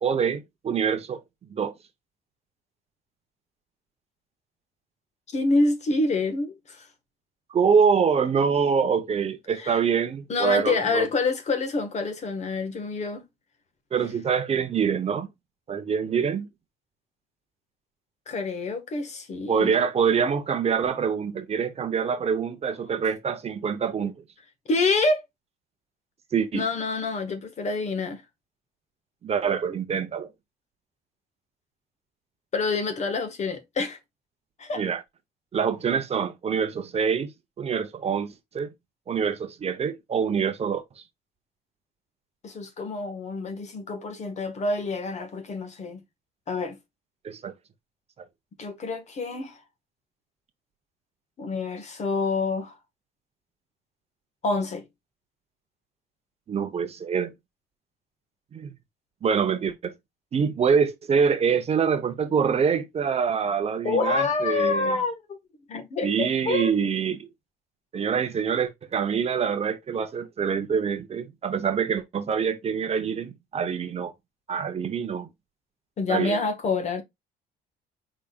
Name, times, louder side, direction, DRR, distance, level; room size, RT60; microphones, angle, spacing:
voice 1, 0.0-1.2 1.5-1.7 7.5-11.1 13.9-15.3 15.7-16.5 19.5-24.1 26.3-26.7 29.2-30.3 34.8-35.0 35.5-37.3 37.6-38.7 39.1-41.0 47.2-47.5 56.5-57.3 58.5-58.7 59.2-59.9 60.3-65.0 66.0-67.3 67.9-74.1 74.5-75.3 76.1-76.4, right 6 dB, 35° right, 0.8 m, -25 dB
voice 2, 5.3-6.9 9.6-9.8 10.3-13.2 18.3-19.7 24.7-25.2 26.5-28.2 32.5-34.0 34.6-34.8 42.4-46.0 46.5-46.8 48.6-49.6 51.4-52.7 54.4-54.8 63.8-65.4 65.7-66.7 76.0-77.0, left 3 dB, 45° left, 1.5 m, -27 dB
4.9 x 4.2 x 2.3 m
cardioid pair, 110°, 17 cm